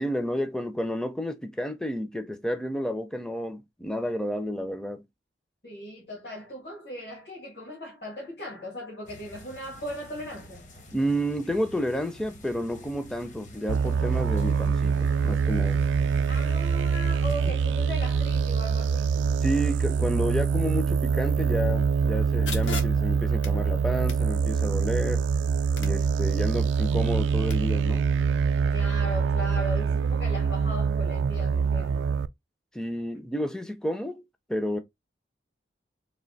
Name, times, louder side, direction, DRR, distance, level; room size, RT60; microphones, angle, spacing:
voice 1, 0.0-5.0 10.9-15.8 17.5-17.6 19.4-25.3 25.8-28.1 32.7-34.2 34.5-34.8, equal, 5° left, 0.4 m, -30 dB
voice 2, 5.6-10.7 16.3-19.2 28.7-32.1, equal, 65° left, 1.5 m, -38 dB
sound 1, 9.1-17.5, left 1 dB, 40° left, 0.8 m, -48 dB
sound 2, 13.7-32.3, right 6 dB, 85° right, 0.3 m, -25 dB
sound 3, 22.5-27.5, left 3 dB, 80° left, 1.0 m, -42 dB
3.3 x 2.7 x 3.9 m
head